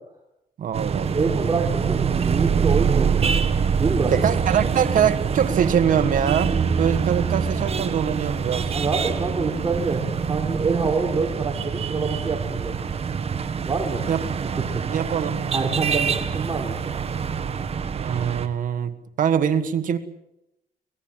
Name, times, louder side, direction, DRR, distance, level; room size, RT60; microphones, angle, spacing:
voice 1, 0.6-1.3 4.1-8.7 14.1-14.2 14.9-15.4 17.9-20.0, right 8 dB, 65° right, 1.7 m, -23 dB
sound 1, 0.7-18.5, right 6 dB, 40° right, 1.5 m, -25 dB
voice 2, 1.1-3.4 3.7-4.1 4.6-4.7 8.7-12.8 13.6-14.1 14.7-14.9 15.5-17.1, right 4 dB, 25° right, 3.6 m, -26 dB
24.5 x 19.0 x 7.6 m
cardioid pair, 140°, 15 cm